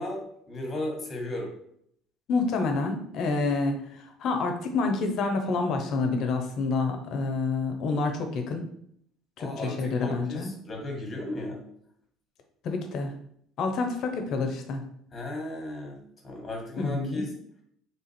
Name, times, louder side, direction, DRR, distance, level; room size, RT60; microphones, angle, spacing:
voice 1, 0.0-1.5 9.4-11.6 15.1-17.3, left 1 dB, 30° left, 1 dB, 1.4 m, -35 dB
voice 2, 2.3-8.6 9.4-10.5 12.6-13.1 13.6-14.9 16.8-17.3, left 3 dB, 60° left, 5 dB, 0.8 m, -28 dB
3.4 x 2.5 x 4.2 m, 0.69 s
supercardioid pair, 80°, 0 cm